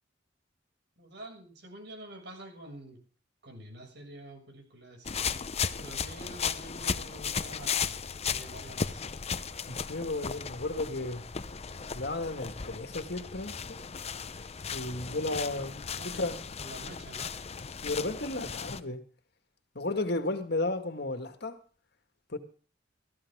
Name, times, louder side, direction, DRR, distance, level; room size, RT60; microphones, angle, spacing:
voice 1, 1.0-3.0 3.4-5.1 5.8-9.0 15.9-16.2 16.6-17.3, right 1 dB, 65° right, 6.6 m, -47 dB
sound 1, 5.0-18.8, left 6 dB, 35° left, 0.8 m, -36 dB
voice 2, 9.7-11.2 12.0-13.8 14.7-16.4 17.8-19.0 19.8-21.6 22.3-22.4, left 2 dB, 60° left, 2.0 m, -33 dB
18.0 x 14.5 x 3.6 m
head